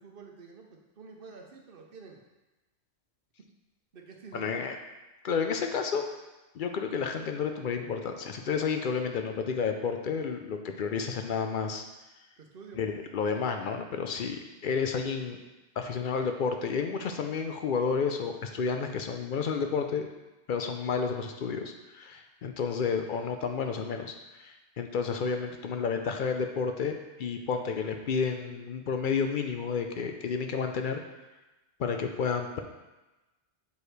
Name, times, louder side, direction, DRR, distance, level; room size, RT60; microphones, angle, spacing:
voice 1, 0.0-2.2 3.9-4.7 12.4-13.0, right 5 dB, 55° right, 1 dB, 1.0 m, -49 dB
voice 2, 4.3-4.8 5.2-6.1 6.5-11.8 12.8-15.4 15.8-20.1 20.5-31.0 31.8-32.6, left 5 dB, 60° left, 5 dB, 0.6 m, -31 dB
6.9 x 4.7 x 3.3 m, 1.1 s
omnidirectional pair, 1.1 m